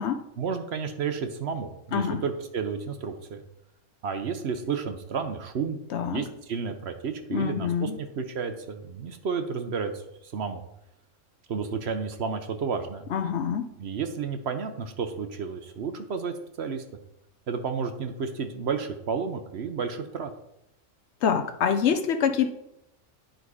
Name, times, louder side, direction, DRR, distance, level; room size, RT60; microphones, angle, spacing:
voice 1, 0.4-3.4 4.0-10.6 11.5-13.0 13.8-16.8 17.5-20.3, right 5 dB, 60° right, 7 dB, 0.9 m, -32 dB
voice 2, 1.9-2.2 5.9-6.2 7.3-8.0 13.1-13.7 21.2-22.5, left 7 dB, 65° left, 8 dB, 0.8 m, -25 dB
10.0 x 3.9 x 4.7 m, 0.80 s
omnidirectional pair, 1.3 m